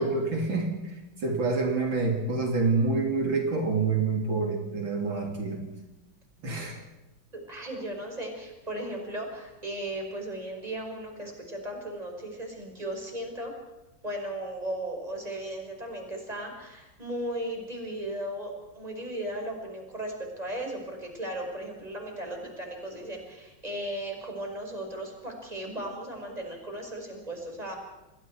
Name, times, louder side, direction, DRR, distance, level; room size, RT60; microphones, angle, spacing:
voice 1, 0.0-5.6 6.4-6.8, right 3 dB, 70° right, 1 dB, 3.6 m, -27 dB
voice 2, 7.3-13.5 14.0-27.8, right 1 dB, 20° right, 2 dB, 5.6 m, -36 dB
29.0 x 21.5 x 4.6 m, 1.0 s
omnidirectional pair, 2.2 m